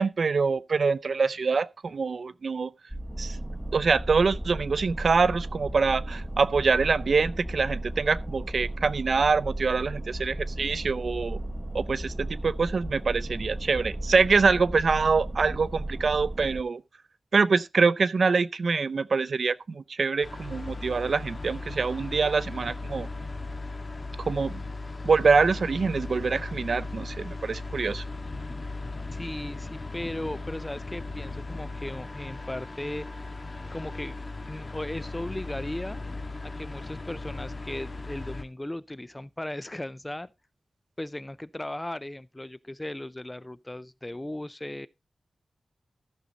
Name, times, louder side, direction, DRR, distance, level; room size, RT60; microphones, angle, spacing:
voice 1, 0.0-2.7 3.2-3.4 3.7-11.4 11.7-16.8 17.3-23.1 24.3-24.6 25.0-28.0, right 4 dB, 70° right, 0.5 m, -25 dB
sound 1, 2.9-16.6, right 1 dB, 5° right, 1.3 m, -35 dB
sound 2, 20.2-38.4, left 3 dB, 40° left, 1.4 m, -37 dB
voice 2, 29.1-33.1 33.7-34.2 34.5-36.0 36.4-40.3 41.0-44.9, left 1 dB, 15° left, 0.4 m, -37 dB
14.0 x 6.4 x 3.9 m
wide cardioid pair, 90°, 0 cm